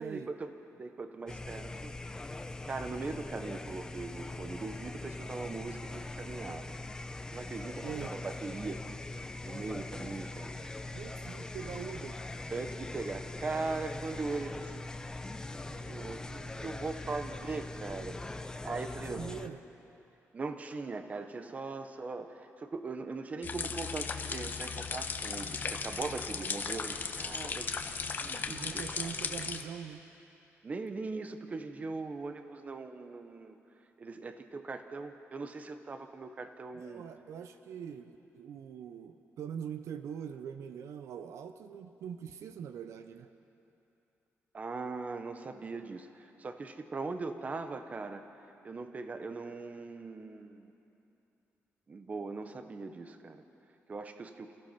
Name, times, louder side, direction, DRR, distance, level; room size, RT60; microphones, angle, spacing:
voice 1, 0.0-2.3 2.6-6.8 7.3-8.8 9.4-10.6 12.5-14.8 15.6-19.2 20.3-29.1 30.6-33.6 34.0-37.0 44.5-48.2 48.6-50.7 51.9-53.4 53.9-54.5, right 3 dB, 30° right, 8 dB, 1.1 m, -40 dB
sound 1, 1.3-19.5, left 2 dB, 15° left, 0.7 m, -42 dB
voice 2, 7.8-8.1 10.9-12.2 15.7-16.6 19.1-19.6 28.4-30.0 36.7-43.3, right 8 dB, 75° right, 9 dB, 0.8 m, -43 dB
sound 2, 23.4-29.6, left 5 dB, 40° left, 1.1 m, -36 dB
29.0 x 15.5 x 5.9 m, 2.9 s
cardioid pair, 140°, 5 cm